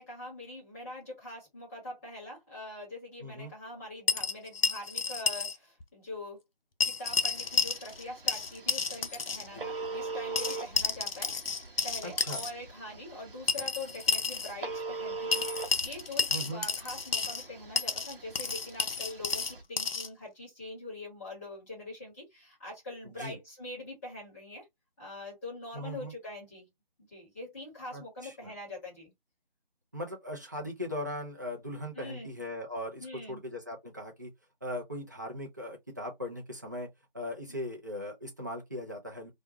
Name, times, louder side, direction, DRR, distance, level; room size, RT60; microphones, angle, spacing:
voice 1, 0.0-6.4 6.8-11.4 11.8-24.6 25.0-26.7 27.1-29.1 31.9-32.3 33.0-33.4 37.5-37.6, left 1 dB, 15° left, 1.1 m, -43 dB
voice 2, 3.2-3.5 9.5-9.6 12.0-12.4 16.3-16.6 23.0-23.4 25.7-26.1 27.9-28.5 29.9-34.3 34.6-36.9 37.1-39.3, left 1 dB, 20° right, 0.5 m, -39 dB
sound 1, 4.1-5.6 5.8-5.9 6.8-8.0 8.3-9.5 10.4-12.5 13.5-14.5 15.3-17.5 17.8-20.1, left 5 dB, 80° left, 0.6 m, -31 dB
Telephone, 7.1-19.6, right 3 dB, 65° right, 0.8 m, -42 dB
2.3 x 2.1 x 2.7 m
figure-of-eight pair, 155°, 29 cm